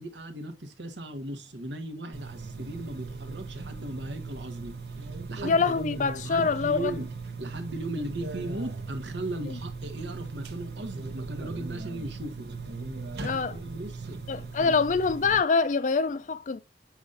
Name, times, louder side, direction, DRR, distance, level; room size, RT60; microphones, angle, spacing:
voice 1, 0.0-4.8 5.3-5.6 6.2-7.1 7.4-12.5 13.2-14.7, right 1 dB, 85° right, 1.3 m, -37 dB
sound 1, 2.1-15.4, right 3 dB, 65° right, 0.9 m, -38 dB
voice 2, 5.4-6.9 9.5-9.6 13.2-13.6 14.3-16.6, left 4 dB, 45° left, 0.4 m, -25 dB
7.2 x 5.0 x 2.6 m
head